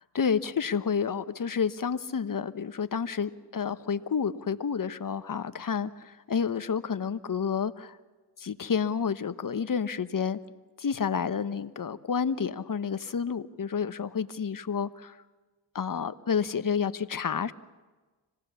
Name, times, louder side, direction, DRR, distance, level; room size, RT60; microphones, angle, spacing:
voice 1, 0.1-8.0 8.4-10.4 10.8-15.2 15.7-17.5, left 6 dB, 40° left, 12 dB, 1.1 m, -30 dB
25.5 x 18.5 x 7.1 m, 1.3 s
supercardioid pair, 50°, 50 cm